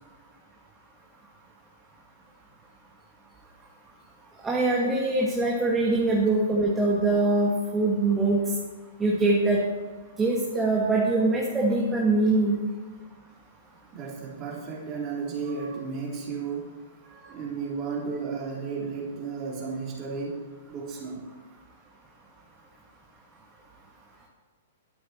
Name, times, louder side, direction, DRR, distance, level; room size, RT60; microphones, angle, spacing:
voice 1, 4.4-8.4 9.0-9.6 10.2-12.6, right 2 dB, 15° right, -3 dB, 1.7 m, -23 dB
voice 2, 13.9-16.7 17.0-20.4 20.7-21.2, right 5 dB, 35° right, -2 dB, 3.3 m, -33 dB
12.0 x 8.5 x 4.4 m, 1.4 s
hypercardioid pair, 120°, 0 cm